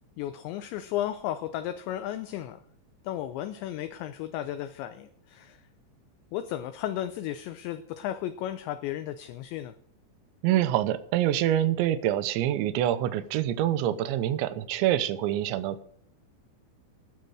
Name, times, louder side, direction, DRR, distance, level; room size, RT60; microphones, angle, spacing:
voice 1, 0.2-2.6 3.0-5.6 6.3-9.7, left 12 dB, 80° left, 2.6 m, -34 dB
voice 2, 10.4-15.9, right 12 dB, 80° right, 2.9 m, -26 dB
19.5 x 6.7 x 4.9 m
omnidirectional pair, 5.7 m